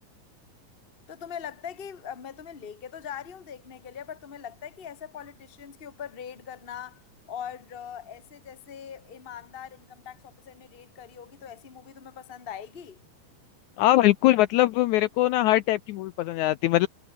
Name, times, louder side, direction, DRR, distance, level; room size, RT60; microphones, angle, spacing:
voice 1, 1.1-13.0, left 8 dB, 30° left, 1.0 m, -41 dB
voice 2, 13.8-16.9, left 15 dB, 80° left, 1.8 m, -22 dB
omnidirectional pair, 3.9 m